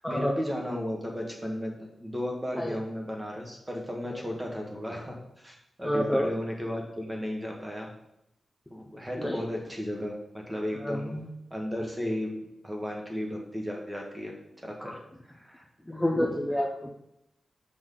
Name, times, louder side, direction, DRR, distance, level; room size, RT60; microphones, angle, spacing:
voice 1, 0.1-1.7 2.0-7.9 8.7-10.1 10.5-11.2 11.5-12.3 12.6-14.3 14.6-15.6, equal, 15° right, 0 dB, 1.5 m, -34 dB
voice 2, 5.8-6.3 9.2-9.5 10.7-11.3 14.8-14.9 15.9-16.9, equal, 5° left, -1 dB, 0.6 m, -29 dB
6.1 x 6.0 x 3.9 m, 0.82 s
wide cardioid pair, 145°, 0 cm